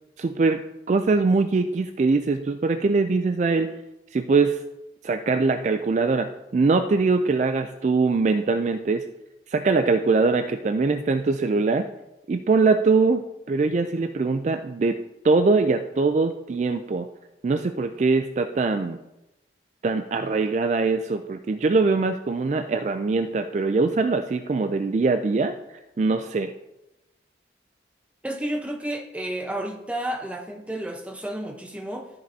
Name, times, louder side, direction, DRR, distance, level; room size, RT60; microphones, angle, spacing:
voice 1, 0.2-0.6 0.9-3.7 4.1-4.6 5.0-9.1 9.5-11.9 12.3-17.1 17.4-19.0 19.8-25.6 26.0-26.5, right 3 dB, 40° right, 8 dB, 0.3 m, -22 dB
voice 2, 28.2-32.1, right 1 dB, 5° right, 2 dB, 0.8 m, -31 dB
13.5 x 5.3 x 2.7 m, 0.95 s
head